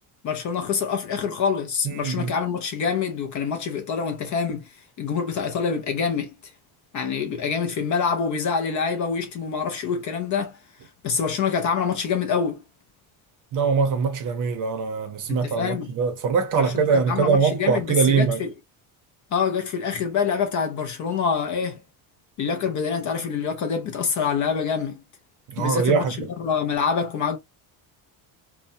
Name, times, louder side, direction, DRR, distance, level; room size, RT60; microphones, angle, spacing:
voice 1, 0.2-4.7 5.0-6.5 6.9-10.6 11.0-12.6 15.3-15.9 16.5-18.5 19.3-21.8 22.4-25.0 25.6-26.0 26.4-27.4, left 6 dB, 40° left, 0.4 m, -26 dB
voice 2, 1.8-2.3 13.5-18.4 25.5-26.3, right 5 dB, 40° right, 0.7 m, -22 dB
2.7 x 2.2 x 2.5 m
cardioid pair, 175°, 48 cm